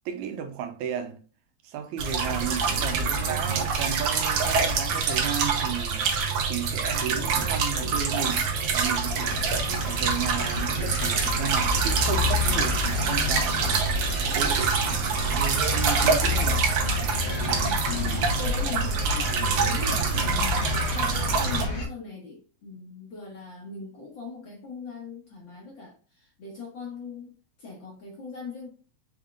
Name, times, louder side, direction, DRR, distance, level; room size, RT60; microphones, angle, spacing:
voice 1, 0.1-1.2 1.6-6.1 6.5-8.5 8.7-16.6, right 8 dB, 85° right, 2.0 m, -34 dB
sound 1, 2.0-21.6, right 5 dB, 65° right, 1.4 m, -26 dB
sound 2, 9.2-21.9, left 3 dB, 80° left, 2.6 m, -30 dB
voice 2, 17.9-27.3 27.6-28.7, left 5 dB, 55° left, 1.4 m, -40 dB
6.0 x 3.6 x 2.4 m
omnidirectional pair, 3.3 m